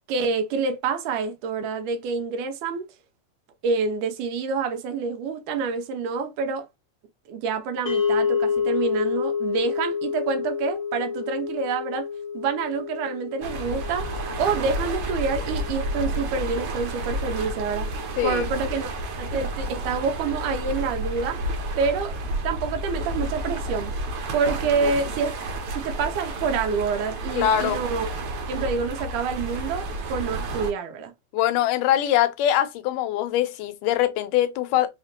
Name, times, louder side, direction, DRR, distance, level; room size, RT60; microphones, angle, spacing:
voice 1, 0.1-2.9 3.6-6.7 7.3-12.1 12.3-17.9 18.2-18.9 19.2-21.4 21.8-22.2 22.4-23.9 24.3-25.4 25.7-28.1 28.5-31.1, right 5 dB, 90° right, 2.3 m, -27 dB
sound 1, 7.9-18.2, left 6 dB, 55° left, 1.3 m, -30 dB
sound 2, 13.4-30.7, right 1 dB, 70° right, 1.4 m, -31 dB
voice 2, 27.4-27.8 31.3-34.9, left 11 dB, 90° left, 2.3 m, -23 dB
5.4 x 2.9 x 2.9 m
omnidirectional pair, 3.6 m